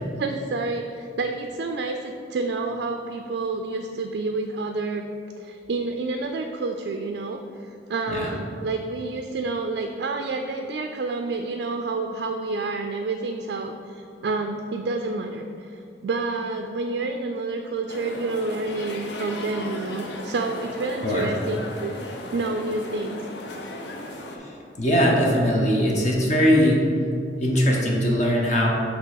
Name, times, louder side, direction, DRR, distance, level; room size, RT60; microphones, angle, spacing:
voice 1, 0.0-5.0 5.4-22.0 22.3-23.2, right 3 dB, 65° right, 4 dB, 0.3 m, -29 dB
sound 1, 17.9-24.4, left 1 dB, 70° left, 0.7 m, -36 dB
voice 2, 24.8-26.8 27.4-28.7, equal, 40° left, -2 dB, 0.8 m, -20 dB
5.8 x 3.2 x 5.7 m, 2.5 s
head